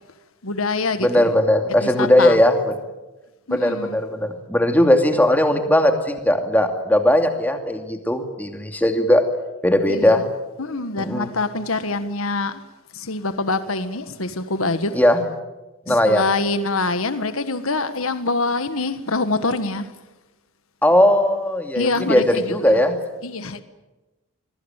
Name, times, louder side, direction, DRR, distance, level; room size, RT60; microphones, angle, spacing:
voice 1, 0.4-1.3 1.8-2.4 3.5-4.0 9.9-10.2 10.6-12.6 12.9-15.0 15.9-19.9 21.7-22.8 23.2-23.6, left 3 dB, 75° left, 1.6 m, -25 dB
voice 2, 1.0-2.5 3.5-9.2 9.6-10.2 11.0-11.3 14.9-15.2 15.9-16.2 20.8-22.9, left 1 dB, 10° left, 2.6 m, -18 dB
25.5 x 22.0 x 9.1 m
head